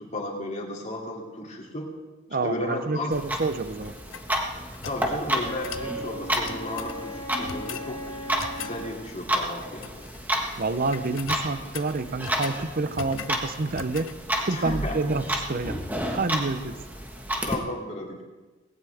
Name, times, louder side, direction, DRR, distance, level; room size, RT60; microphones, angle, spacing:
voice 1, 0.0-1.9 2.4-3.1 4.8-8.0 8.6-9.9 14.5-15.0 17.5-18.2, left 1 dB, 35° left, -1 dB, 2.8 m, -34 dB
voice 2, 2.3-3.9 10.6-14.1 14.4-15.8 16.1-16.8, right 3 dB, 45° right, 12 dB, 0.7 m, -28 dB
Clock, 3.1-17.5, right 1 dB, 10° right, 1.4 m, -31 dB
sound 1, 3.8-5.1 5.6-5.9 6.3-7.0 7.5-7.9 8.4-8.8 9.6-10.2 10.5-10.7 10.9-12.6 13.0-13.4 13.7-14.2, left 7 dB, 75° left, 0.7 m, -39 dB
Wind instrument woodwind instrument, 5.4-8.9, equal, 15° left, 4.3 m, -38 dB
19.0 x 17.0 x 3.5 m, 1.3 s
head